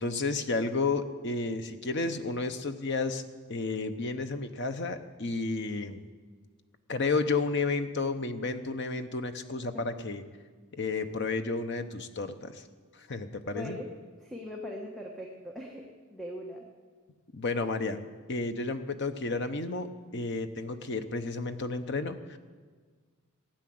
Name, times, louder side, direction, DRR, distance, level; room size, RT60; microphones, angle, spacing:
voice 1, 0.0-3.2 3.5-6.0 6.9-10.2 10.8-12.6 13.0-13.8 17.3-18.0 18.3-22.4, left 3 dB, 50° left, 8 dB, 0.9 m, -32 dB
voice 2, 13.5-13.9 14.2-16.6, left 1 dB, ahead, -1 dB, 1.2 m, -40 dB
16.0 x 9.1 x 7.7 m, 1.5 s
head